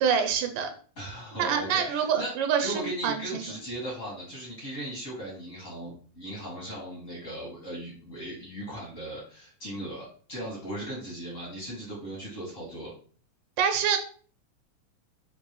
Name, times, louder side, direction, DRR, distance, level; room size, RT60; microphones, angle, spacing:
voice 1, 0.0-0.7 1.4-3.1 13.6-14.0, right 7 dB, 80° right, 5 dB, 2.1 m, -25 dB
voice 2, 1.0-2.3 2.6-12.9, right 1 dB, 60° left, -5 dB, 0.8 m, -37 dB
5.3 x 2.7 x 2.9 m, 0.43 s
omnidirectional pair, 3.9 m